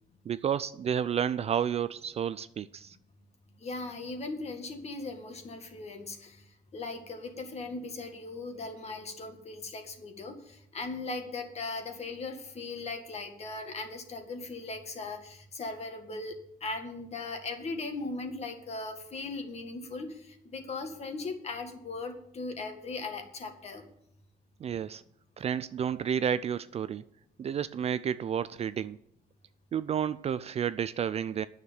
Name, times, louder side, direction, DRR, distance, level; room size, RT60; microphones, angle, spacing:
voice 1, 0.3-3.0 24.6-25.0 25.4-27.0 27.4-29.0 29.7-31.5, right 8 dB, 40° right, 0.4 m, -31 dB
voice 2, 3.6-6.4 6.7-16.4 16.6-23.9, left 3 dB, 40° left, 1.9 m, -38 dB
9.6 x 6.6 x 8.7 m
cardioid pair, 110°, 17 cm